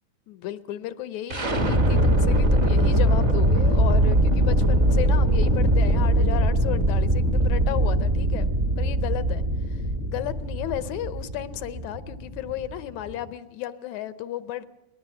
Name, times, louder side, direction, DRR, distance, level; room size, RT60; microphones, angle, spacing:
voice 1, 0.3-8.5 8.8-9.4 9.7-14.6, left 12 dB, 75° left, 13 dB, 2.2 m, -33 dB
sound 1, 1.3-13.2, right 1 dB, 30° right, 1.5 m, -22 dB
22.0 x 19.5 x 7.1 m, 0.97 s
omnidirectional pair, 3.5 m